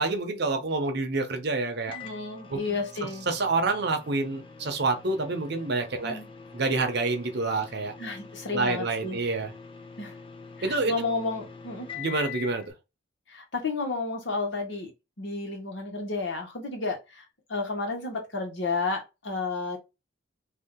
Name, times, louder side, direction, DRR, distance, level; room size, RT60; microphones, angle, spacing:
voice 1, 0.0-2.0 2.5-2.8 3.3-6.2 6.5-7.9 8.5-9.5 10.6-10.9 11.9-12.6, right 3 dB, 60° right, 0.8 m, -27 dB
voice 2, 1.9-3.3 6.0-6.3 8.0-9.2 10.0-10.2 10.6-11.9 13.3-14.9 15.2-19.8, left 3 dB, 70° left, 1.2 m, -32 dB
Microwave oven, 1.9-12.7, left 6 dB, 30° left, 0.5 m, -45 dB
2.7 x 2.4 x 3.6 m
head